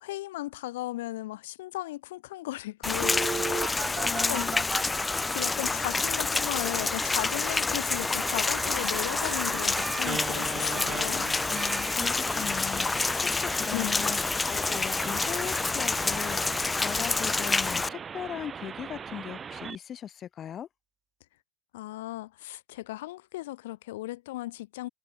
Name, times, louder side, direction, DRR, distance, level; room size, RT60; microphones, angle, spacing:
voice 1, 0.0-4.5 5.3-11.3 13.7-14.0 21.7-24.9, left 17 dB, 85° left, 0.6 m, -36 dB
Rain, 2.8-17.9, left 3 dB, 10° left, 0.4 m, -28 dB
Telephone, 3.0-5.5 6.9-19.8, right 6 dB, 20° right, 0.8 m, -38 dB
voice 2, 4.0-4.7 11.1-14.2 14.5-20.7, left 9 dB, 30° left, 0.8 m, -39 dB
supercardioid pair, 145°, 0 cm